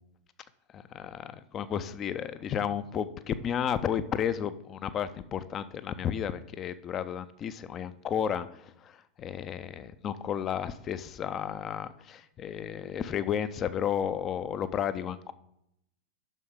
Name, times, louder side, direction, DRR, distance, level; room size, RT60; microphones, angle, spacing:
voice 1, 0.7-15.3, left 8 dB, 30° left, 13 dB, 0.4 m, -33 dB
9.0 x 6.1 x 3.7 m, 0.78 s
figure-of-eight pair, 90°, 0 cm